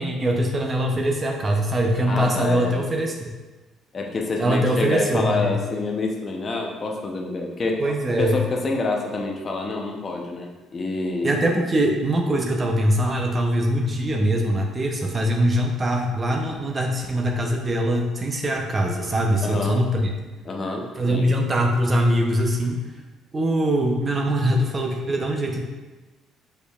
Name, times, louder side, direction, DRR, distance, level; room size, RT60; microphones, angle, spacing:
voice 1, 0.0-3.3 4.4-5.6 7.8-8.4 11.2-20.1 21.0-22.8 23.3-25.6, right 1 dB, 25° right, 2 dB, 0.6 m, -22 dB
voice 2, 2.1-2.9 3.9-7.8 8.2-11.4 19.4-19.8 20.4-21.2, left 3 dB, 35° left, 1 dB, 0.6 m, -27 dB
5.0 x 4.4 x 2.3 m, 1.2 s
cardioid pair, 115°, 0 cm